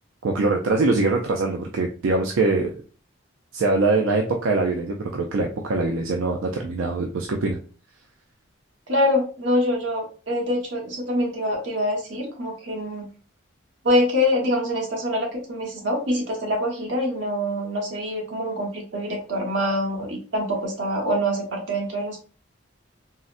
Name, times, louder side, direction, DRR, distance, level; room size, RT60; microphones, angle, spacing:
voice 1, 0.2-2.7 3.5-7.6, right 3 dB, 85° right, 2 dB, 0.4 m, -23 dB
voice 2, 8.9-13.1 13.8-22.2, left 1 dB, 65° right, 0 dB, 1.1 m, -25 dB
3.8 x 2.1 x 2.4 m, 0.37 s
head